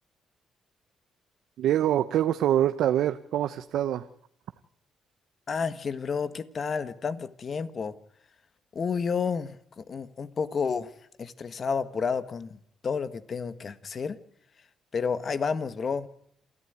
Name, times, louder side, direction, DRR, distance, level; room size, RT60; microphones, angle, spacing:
voice 1, 1.6-4.1, right 11 dB, 80° right, 10 dB, 0.9 m, -25 dB
voice 2, 5.5-7.9 8.7-14.2 14.9-16.1, left 5 dB, 45° left, 14 dB, 1.6 m, -31 dB
27.5 x 14.0 x 9.4 m, 0.69 s
cardioid pair, 90°, 0 cm